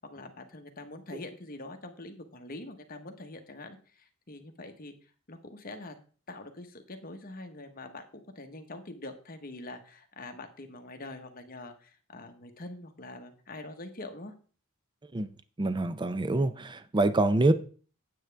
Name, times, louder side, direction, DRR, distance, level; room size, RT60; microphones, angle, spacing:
voice 1, 0.0-4.9 5.3-5.9 6.3-8.1 8.3-14.3, left 2 dB, 45° left, 1.2 m, -44 dB
voice 2, 15.6-17.5, right 2 dB, 20° right, 0.5 m, -25 dB
9.0 x 8.6 x 3.4 m
head